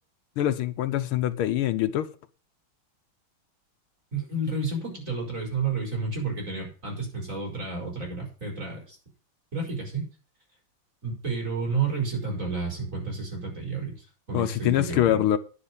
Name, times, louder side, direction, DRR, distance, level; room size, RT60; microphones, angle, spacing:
voice 1, 0.4-2.1 14.3-15.4, left 12 dB, 85° left, 1.7 m, -24 dB
voice 2, 4.1-9.0 9.5-10.1 11.0-15.3, right 4 dB, 35° right, 5.4 m, -31 dB
9.8 x 6.7 x 7.1 m
omnidirectional pair, 2.3 m